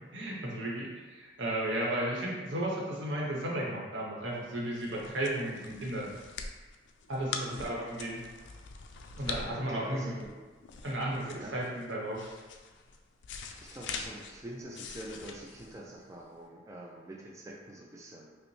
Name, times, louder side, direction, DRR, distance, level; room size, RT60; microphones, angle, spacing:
voice 1, 0.1-6.1 7.1-8.2 9.2-10.2 10.8-12.3, right 1 dB, 75° right, -3 dB, 0.9 m, -34 dB
sound 1, 4.4-16.4, left 5 dB, 70° left, 0.3 m, -44 dB
voice 2, 7.3-7.7 9.7-10.4 11.3-11.6 13.6-18.4, right 1 dB, 15° right, -2 dB, 0.3 m, -44 dB
5.1 x 2.1 x 3.1 m, 1.3 s
head